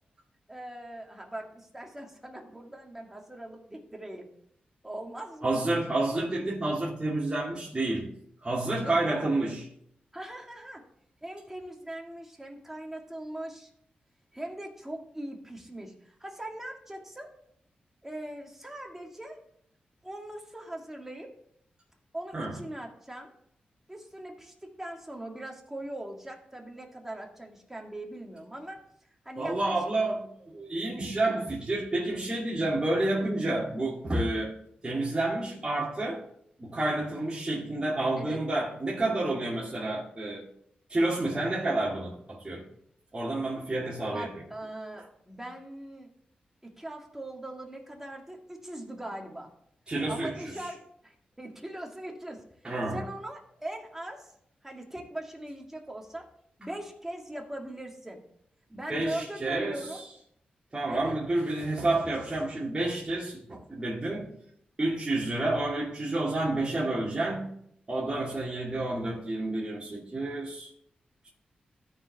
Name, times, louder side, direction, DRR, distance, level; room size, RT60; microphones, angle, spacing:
voice 1, 0.5-4.3 4.8-5.6 8.8-9.3 10.1-10.8 11.2-13.7 14.3-17.3 18.0-19.4 20.0-21.3 22.1-23.3 23.9-28.8 29.2-29.9 38.2-38.4 44.1-46.1 46.6-49.5 50.1-52.4 52.9-54.3 54.6-56.3 56.6-58.2 58.7-60.0 60.9-61.2, right 1 dB, 10° right, 2.0 m, -40 dB
voice 2, 5.4-8.1 8.4-9.6 22.3-22.6 29.4-34.5 34.8-36.2 36.6-40.5 40.9-42.6 43.1-44.4 49.9-50.5 52.6-53.0 58.7-60.0 60.7-64.3 64.8-67.5 67.9-70.7, right 2 dB, 30° right, 2.3 m, -29 dB
13.5 x 4.8 x 3.5 m
cardioid pair, 65°, 3 cm